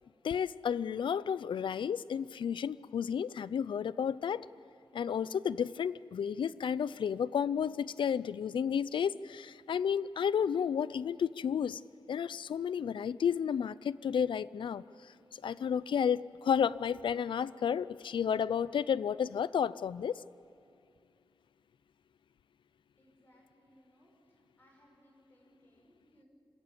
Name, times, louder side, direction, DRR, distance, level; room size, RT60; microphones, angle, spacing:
voice 1, 0.2-4.5 4.9-11.8 12.1-14.8 15.4-20.1, left 7 dB, 85° left, 0.4 m, -32 dB
voice 2, 23.0-24.1 24.6-26.3, equal, 25° left, 5.9 m, -64 dB
26.0 x 14.0 x 8.3 m
wide cardioid pair, 110°, 8 cm